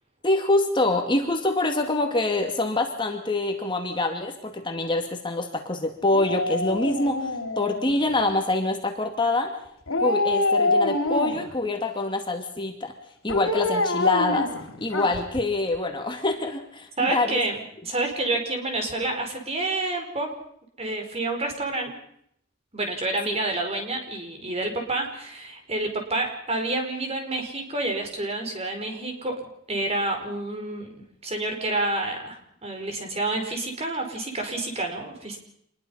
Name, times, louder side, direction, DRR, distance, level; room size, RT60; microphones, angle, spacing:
voice 1, 0.2-9.5 10.0-12.9 13.2-14.5 14.8-17.4 23.3-23.4, left 2 dB, 25° left, 4 dB, 2.3 m, -25 dB
Dog, 6.1-8.2 9.9-11.6 13.3-15.4 15.7-15.8, left 2 dB, 90° left, 3.0 m, -26 dB
voice 2, 17.0-20.3 20.8-21.9 22.7-29.4 29.7-30.9 31.2-35.4, right 2 dB, 30° right, 4 dB, 4.7 m, -28 dB
27.0 x 21.0 x 5.7 m, 0.71 s
head